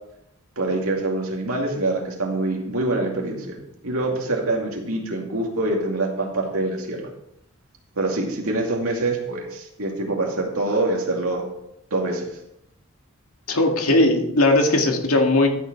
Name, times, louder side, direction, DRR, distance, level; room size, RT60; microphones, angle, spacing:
voice 1, 0.6-3.6 3.8-7.0 8.0-11.4 11.9-12.3, right 2 dB, 85° right, 0 dB, 2.4 m, -25 dB
voice 2, 13.5-15.5, left 2 dB, 85° left, 2 dB, 2.1 m, -18 dB
13.0 x 7.1 x 4.6 m, 0.79 s
head